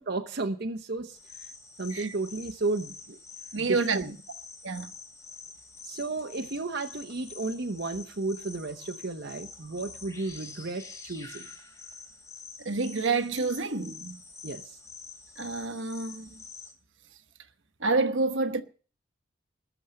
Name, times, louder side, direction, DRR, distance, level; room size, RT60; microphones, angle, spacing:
voice 1, 0.0-1.5 1.8-3.2 3.5-4.1 5.8-11.5 14.4-14.8, right 3 dB, 55° right, 1.0 m, -33 dB
sound 1, 1.1-16.7, left 4 dB, 15° left, 3.3 m, -47 dB
voice 2, 3.5-4.0 4.6-4.9 12.6-14.2 15.4-16.3 17.8-18.6, right 3 dB, 70° right, 1.2 m, -28 dB
20.0 x 7.2 x 7.8 m
head